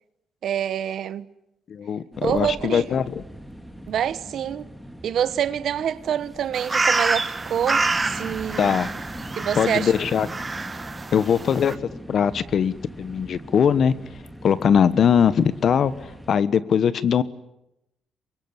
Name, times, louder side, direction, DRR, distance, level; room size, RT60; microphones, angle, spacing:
voice 1, 0.4-1.2 2.2-2.9 3.9-4.7 5.0-8.8 9.4-9.9, right 9 dB, 65° right, 1.1 m, -26 dB
voice 2, 1.7-3.2 8.6-8.9 9.6-10.3 11.1-13.9 14.4-17.2, left 7 dB, 55° left, 1.2 m, -21 dB
sound 1, 2.1-16.3, equal, 5° left, 2.5 m, -40 dB
sound 2, 6.5-11.7, right 3 dB, 25° right, 1.6 m, -27 dB
25.0 x 22.5 x 9.7 m
cardioid pair, 90°, 0 cm